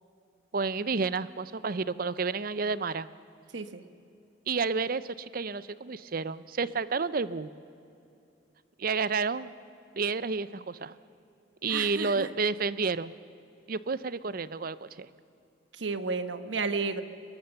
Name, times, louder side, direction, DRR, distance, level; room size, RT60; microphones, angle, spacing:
voice 1, 0.5-3.1 4.5-7.5 8.8-9.5 10.0-11.0 11.6-13.1 13.7-15.1, right 4 dB, 45° right, 16 dB, 0.6 m, -30 dB
voice 2, 3.5-3.8 11.7-12.3 15.7-17.0, right 4 dB, 70° right, 10 dB, 1.1 m, -32 dB
23.0 x 20.5 x 6.9 m, 2.6 s
head